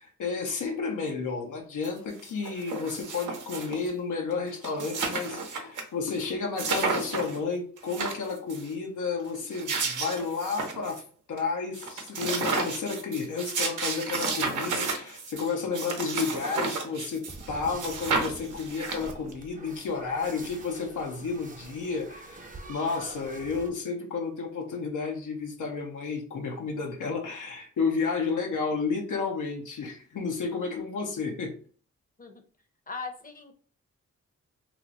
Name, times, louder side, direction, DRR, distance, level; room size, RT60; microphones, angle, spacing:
voice 1, 0.0-31.5, left 4 dB, 85° left, 2 dB, 0.7 m, -32 dB
sound 1, 1.8-1.9 2.2-3.9 4.3-4.4 4.6-5.8 6.1-6.2 6.6-7.4 7.8-8.7 9.3-11.0 11.4-11.5 11.7-17.5 17.8-19.3, right 4 dB, 80° right, 0.7 m, -32 dB
sound 2, 17.3-23.7, right 2 dB, 25° right, 0.6 m, -46 dB
voice 2, 32.9-33.5, left 4 dB, 30° left, 6 dB, 0.7 m, -39 dB
3.0 x 2.0 x 3.8 m, 0.43 s
cardioid pair, 75°, 30 cm